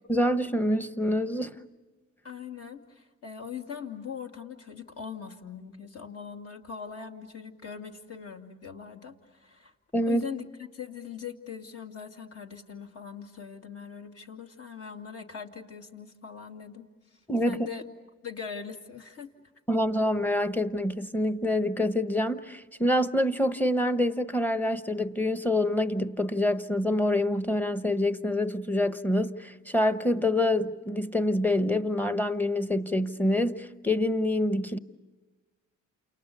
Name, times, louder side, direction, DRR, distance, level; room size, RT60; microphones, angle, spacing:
voice 1, 0.1-1.5 9.9-10.2 17.3-17.6 19.7-34.8, left 1 dB, 5° left, 1.1 m, -26 dB
voice 2, 2.2-9.7 10.1-17.8 18.2-19.3, left 7 dB, 50° left, 2.6 m, -41 dB
30.0 x 28.5 x 6.9 m
cardioid pair, 90°, 30 cm